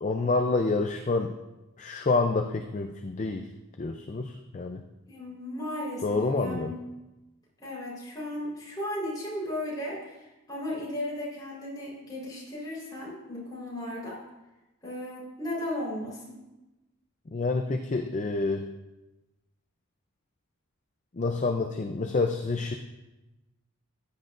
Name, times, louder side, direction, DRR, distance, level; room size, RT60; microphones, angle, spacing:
voice 1, 0.0-1.3 1.8-3.5 3.8-4.8 6.0-6.7 17.3-18.7 21.1-22.7, left 3 dB, 35° left, 4 dB, 0.4 m, -28 dB
voice 2, 5.1-6.8 7.6-14.2 14.8-16.4, left 1 dB, 15° left, -6 dB, 4.0 m, -35 dB
14.0 x 9.9 x 2.5 m, 1.0 s
head